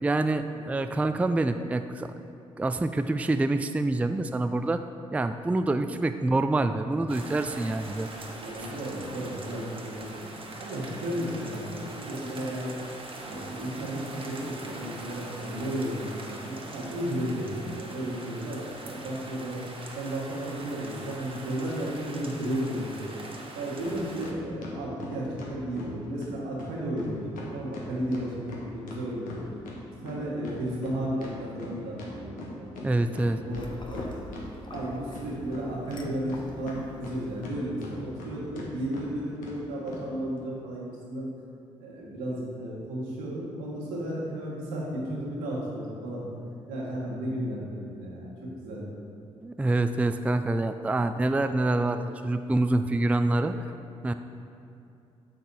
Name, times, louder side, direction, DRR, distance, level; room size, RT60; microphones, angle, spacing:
voice 1, 0.0-2.1 2.6-4.8 5.1-8.1 8.6-8.7 32.8-33.4 49.4-53.6 54.0-54.1, right 2 dB, 10° right, 9 dB, 0.3 m, -26 dB
voice 2, 0.7-1.0 8.3-10.2 10.6-12.8 13.2-19.6 19.9-23.1 23.5-29.4 30.0-34.1 34.7-41.3 41.8-46.2 46.7-48.8, right 1 dB, 80° right, -5 dB, 1.6 m, -34 dB
sound 1, 7.1-24.3, right 2 dB, 40° right, 1.3 m, -42 dB
sound 2, 23.8-24.0 24.2-25.9 26.2-26.3 26.6-26.7 27.0-27.1 27.4-29.8 30.1-32.9 33.1-33.2 33.5-34.5 34.7-35.6 35.9-37.5 37.8-38.3 38.6-38.7 38.9-39.1 39.4-39.6 39.9-40.0, left 3 dB, 75° left, 1.2 m, -41 dB
sound 3, 33.5-37.5, left 2 dB, 35° left, 0.9 m, -44 dB
6.5 x 6.0 x 4.1 m, 2.7 s
hypercardioid pair, 45°, 14 cm